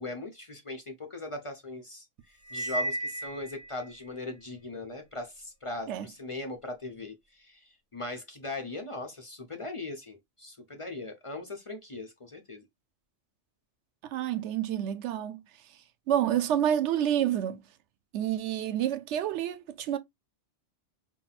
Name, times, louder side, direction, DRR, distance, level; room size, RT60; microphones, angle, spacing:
voice 1, 0.0-12.6, left 2 dB, 35° left, 0.6 m, -39 dB
Cymbal, 2.5-3.9, right 1 dB, 15° right, 1.5 m, -34 dB
voice 2, 14.0-15.4 16.1-17.6 18.1-20.0, right 10 dB, 90° right, 0.9 m, -28 dB
5.6 x 2.2 x 2.4 m
omnidirectional pair, 1.2 m